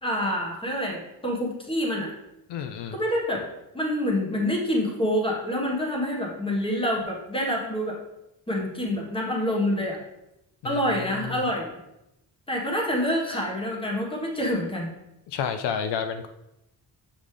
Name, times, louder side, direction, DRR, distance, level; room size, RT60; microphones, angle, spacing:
voice 1, 0.0-2.1 2.9-8.0 8.5-10.0 10.6-11.7 12.5-14.9, equal, 15° left, -1 dB, 1.4 m, -27 dB
voice 2, 2.5-3.0 10.6-10.8 11.2-11.4 15.3-16.3, left 7 dB, 80° left, 7 dB, 0.6 m, -30 dB
7.4 x 5.3 x 3.3 m, 0.88 s
wide cardioid pair, 140°, 41 cm